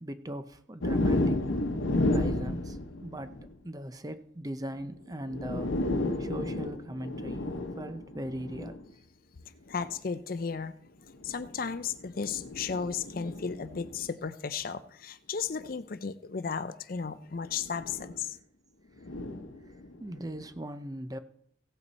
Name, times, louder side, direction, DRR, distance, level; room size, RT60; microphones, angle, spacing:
voice 1, 0.0-1.5 2.1-3.3 3.6-5.7 6.2-7.5 7.8-8.8 20.0-21.2, right 1 dB, 20° right, 10 dB, 0.6 m, -39 dB
Low Wind Gusts- Processed Hightened, 0.8-3.5 4.8-4.9 5.2-8.8 9.7-10.0 11.1-14.1 15.6-15.7 17.4-18.2 19.0-20.4, left 1 dB, 90° left, 0.9 m, -32 dB
voice 2, 9.7-10.7 11.2-18.4, left 6 dB, 45° left, 13 dB, 0.5 m, -34 dB
16.5 x 8.3 x 4.1 m, 0.68 s
head